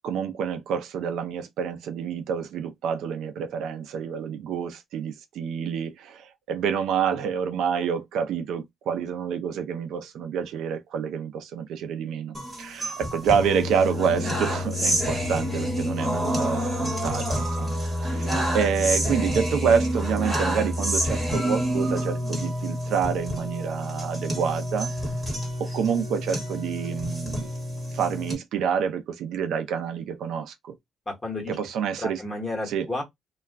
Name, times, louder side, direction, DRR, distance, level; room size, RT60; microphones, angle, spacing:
voice 1, 0.0-24.9 25.6-27.5 27.9-30.8 31.5-32.2 32.7-32.9, right 7 dB, 75° right, 0.5 m, -28 dB
sound 1, 12.3-28.3, equal, 10° right, 1.0 m, -28 dB
voice 2, 31.1-31.6 32.0-33.0, left 2 dB, 15° left, 1.1 m, -32 dB
2.3 x 2.1 x 3.4 m
cardioid pair, 175°, 0 cm